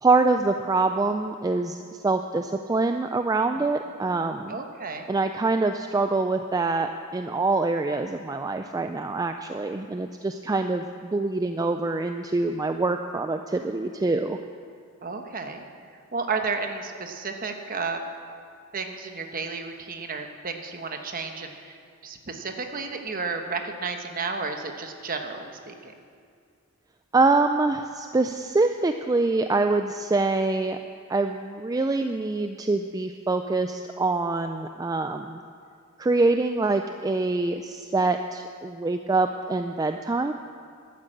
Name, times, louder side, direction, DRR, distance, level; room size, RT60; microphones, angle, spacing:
voice 1, 0.0-4.6 5.1-14.4 27.1-30.8 31.1-35.4 36.0-40.3, right 3 dB, 15° right, 7 dB, 0.3 m, -25 dB
voice 2, 4.5-5.1 15.0-15.6 15.9-18.0 18.7-25.9, right 4 dB, 40° right, 5 dB, 1.1 m, -32 dB
11.5 x 9.8 x 7.7 m, 2.2 s
head